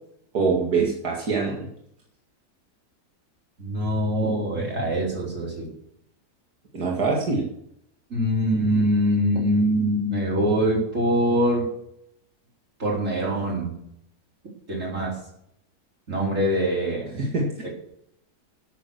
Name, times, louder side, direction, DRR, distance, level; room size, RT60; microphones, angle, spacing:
voice 1, 0.3-1.7 6.7-7.5 17.2-17.6, right 4 dB, 75° right, -2 dB, 2.6 m, -24 dB
voice 2, 3.6-5.7 8.1-11.6 12.8-13.7 14.7-15.1 16.1-17.3, equal, 50° right, -2 dB, 4.5 m, -23 dB
12.5 x 9.2 x 6.6 m, 0.75 s
omnidirectional pair, 1.7 m